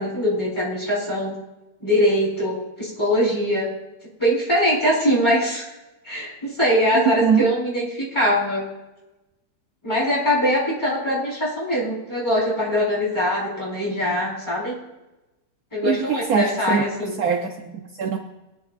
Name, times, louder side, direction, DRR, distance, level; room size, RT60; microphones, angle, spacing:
voice 1, 0.0-1.4 1.8-3.7 4.2-5.6 6.0-8.6 9.8-14.8 15.7-17.1, equal, 15° left, -6 dB, 4.8 m, -22 dB
voice 2, 7.0-7.5 15.8-16.8 17.2-18.2, right 6 dB, 65° right, 4 dB, 1.2 m, -22 dB
21.0 x 10.5 x 2.5 m, 1.0 s
omnidirectional pair, 1.8 m